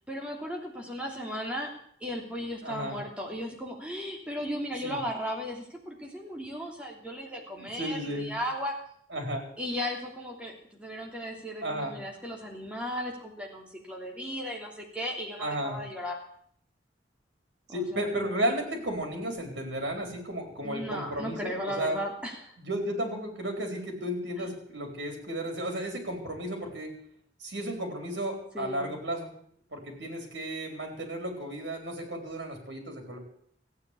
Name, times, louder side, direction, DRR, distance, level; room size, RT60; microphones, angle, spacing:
voice 1, 0.1-1.7 2.0-8.7 9.6-16.2 17.7-18.0 20.6-22.5 28.5-28.9, equal, 5° right, -1 dB, 3.0 m, -36 dB
voice 2, 2.6-3.0 4.8-5.0 7.2-8.4 9.1-9.5 11.6-12.0 15.4-15.8 17.7-22.0 22.6-26.9 27.4-29.3 29.7-33.2, right 1 dB, 75° right, 4 dB, 4.3 m, -33 dB
15.0 x 9.1 x 8.5 m, 0.64 s
head